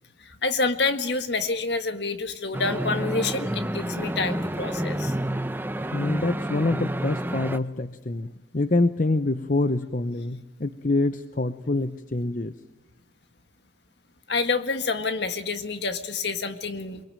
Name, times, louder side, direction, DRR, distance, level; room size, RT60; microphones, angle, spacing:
voice 1, 0.2-5.2 14.3-17.0, left 3 dB, 60° left, 9 dB, 1.8 m, -28 dB
sound 1, 2.5-7.6, right 1 dB, 10° right, 0.8 m, -29 dB
voice 2, 5.9-12.5, left 2 dB, 45° left, 11 dB, 0.8 m, -26 dB
23.5 x 23.0 x 8.9 m, 1.2 s
head